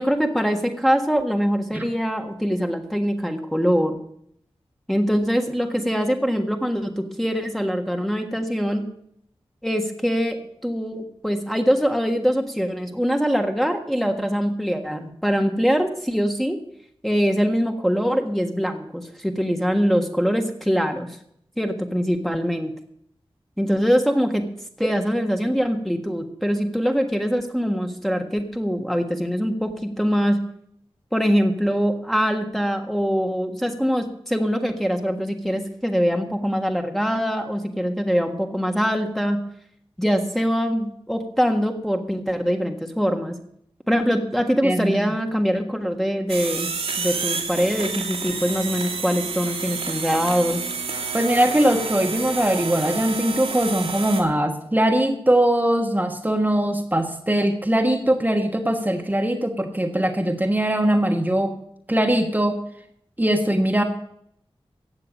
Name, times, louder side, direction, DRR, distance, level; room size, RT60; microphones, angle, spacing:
voice 1, 0.0-4.0 4.9-8.8 9.6-16.6 17.0-21.1 21.6-22.7 23.6-24.4 24.8-30.4 31.1-39.4 40.0-43.3 43.9-46.7 47.0-50.6, equal, ahead, 3 dB, 1.5 m, -23 dB
voice 2, 44.6-45.1 51.1-61.5 61.9-62.5 63.2-63.8, right 1 dB, 15° right, 3 dB, 1.4 m, -21 dB
sound 1, 46.3-54.2, right 5 dB, 90° right, 2.6 m, -29 dB
15.5 x 5.7 x 9.0 m, 0.69 s
wide cardioid pair, 90°, 10 cm